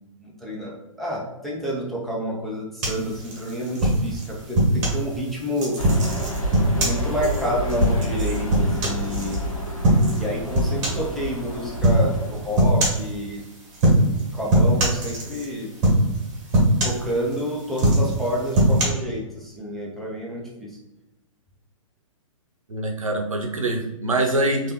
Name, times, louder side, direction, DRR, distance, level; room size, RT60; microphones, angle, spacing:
voice 1, 0.2-5.8 6.8-9.4 10.1-13.4 14.1-15.7 16.8-20.8, equal, ahead, -5 dB, 0.4 m, -29 dB
sound 1, 2.8-5.0 5.6-9.4 9.8-10.2 10.5-11.1 11.8-12.1 12.6-13.1 13.7-14.2 14.5-15.5 15.8-16.2 16.5-17.4 17.7-18.8, right 1 dB, 30° right, 1.2 m, -20 dB
sound 2, 5.8-12.7, equal, 85° left, 1.0 m, -30 dB
voice 2, 22.7-24.7, right 2 dB, 75° right, 4 dB, 0.6 m, -24 dB
3.3 x 2.5 x 2.8 m, 0.98 s
figure-of-eight pair, 120°, 17 cm